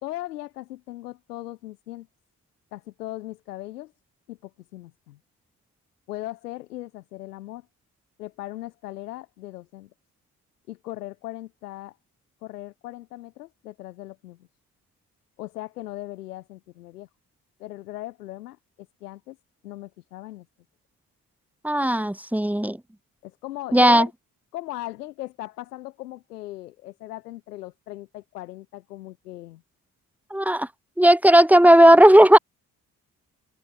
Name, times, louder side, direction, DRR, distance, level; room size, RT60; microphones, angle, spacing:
voice 1, 0.0-2.1 2.7-3.9 4.3-5.2 6.1-7.7 8.2-9.9 10.7-12.0 12.4-14.4 15.4-17.1 17.6-18.6 19.0-19.4 19.6-20.4 23.2-24.1 24.5-29.6, left 16 dB, 85° left, 3.4 m, -38 dB
voice 2, 21.6-22.8 23.7-24.1 30.3-30.7 31.0-32.4, right 1 dB, 5° right, 1.4 m, -15 dB
hypercardioid pair, 40°, 45 cm